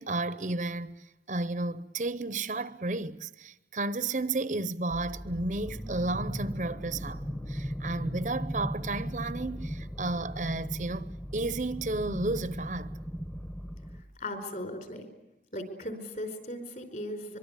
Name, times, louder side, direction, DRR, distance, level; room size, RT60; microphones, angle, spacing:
voice 1, 0.0-12.9, right 2 dB, 45° right, 0.8 m, -33 dB
sound 1, 4.9-14.0, equal, 10° left, 1.1 m, -37 dB
voice 2, 13.9-15.1 15.5-17.4, left 1 dB, 45° left, 5.0 m, -38 dB
24.5 x 24.0 x 8.3 m
head